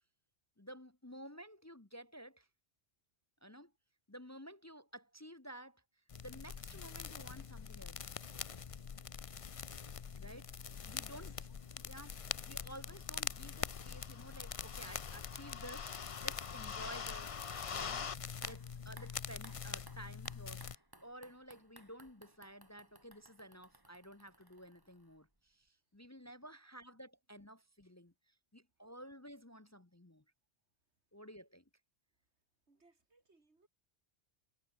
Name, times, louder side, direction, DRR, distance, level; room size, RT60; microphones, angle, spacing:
voice 1, 0.6-2.5 3.4-3.7 4.1-5.8 6.2-8.0 10.2-10.5 10.8-11.3 11.7-18.1 18.4-30.2 31.1-31.6, equal, 15° left, 1.0 m, -53 dB
sound 1, 6.1-20.8, left 6 dB, 40° left, 0.6 m, -43 dB
voice 2, 10.9-12.4 25.8-26.1 26.5-26.9 32.3-32.4 32.7-33.7, right 3 dB, 80° right, 3.6 m, -73 dB
sound 2, 18.4-25.4 25.7-25.8, right 1 dB, 20° right, 3.5 m, -61 dB
omnidirectional pair, 1.1 m